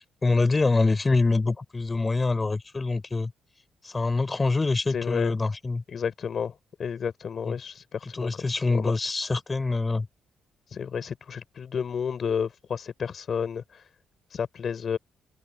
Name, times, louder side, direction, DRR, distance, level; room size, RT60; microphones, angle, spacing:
voice 1, 0.2-3.3 3.8-5.8 7.5-7.6 8.2-10.1, left 3 dB, 25° left, 5.9 m, -25 dB
voice 2, 4.9-5.3 5.9-6.5 6.8-8.9 10.7-13.8 14.3-15.0, left 7 dB, 50° left, 5.8 m, -31 dB
open air
cardioid pair, 90°, 0 cm